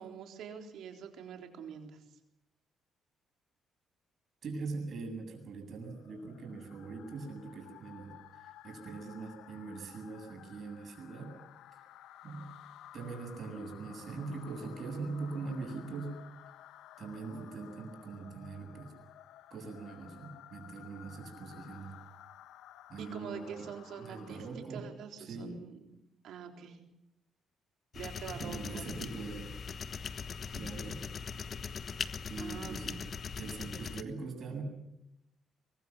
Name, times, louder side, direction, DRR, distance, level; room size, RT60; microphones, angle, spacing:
voice 1, 0.0-2.0 23.0-25.9 26.2-26.8 27.9-29.2 32.4-33.0, right 7 dB, 75° right, 4 dB, 3.8 m, -45 dB
voice 2, 4.4-11.3 11.7-11.8 12.2-12.5 12.9-16.2 17.0-18.9 19.5-21.9 22.9-23.7 24.0-24.9 25.2-25.6 28.3-29.5 30.5-31.0 32.2-33.0 33.4-34.6, right 4 dB, 55° right, 3 dB, 7.9 m, -42 dB
sound 1, 5.8-24.7, left 12 dB, 85° left, 1.0 m, -55 dB
sound 2, 27.9-34.0, left 6 dB, 50° left, 1.2 m, -40 dB
23.5 x 22.0 x 7.4 m, 0.84 s
cardioid pair, 90°, 0 cm